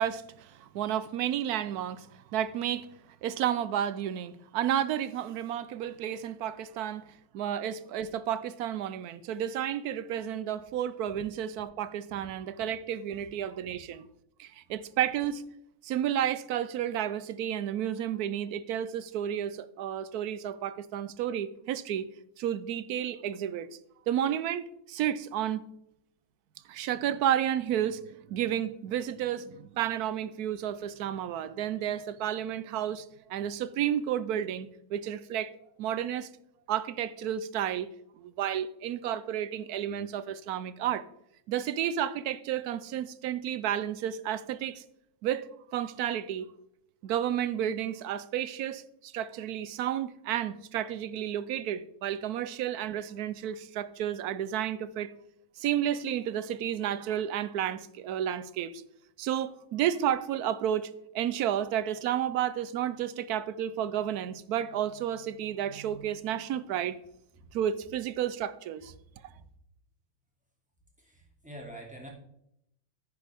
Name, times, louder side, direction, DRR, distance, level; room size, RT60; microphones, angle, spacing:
voice 1, 0.0-2.9 3.2-7.1 7.3-14.1 14.4-15.4 15.8-22.1 22.4-23.7 24.1-25.7 26.7-35.5 35.8-36.3 36.7-37.9 38.2-41.1 41.5-44.8 45.2-46.5 47.0-55.1 55.6-58.8 59.2-67.0 67.5-68.9, right 10 dB, 80° right, 1.1 m, -31 dB
voice 2, 71.0-72.1, right 1 dB, 5° right, 2.6 m, -47 dB
10.5 x 9.8 x 3.5 m
omnidirectional pair, 1.6 m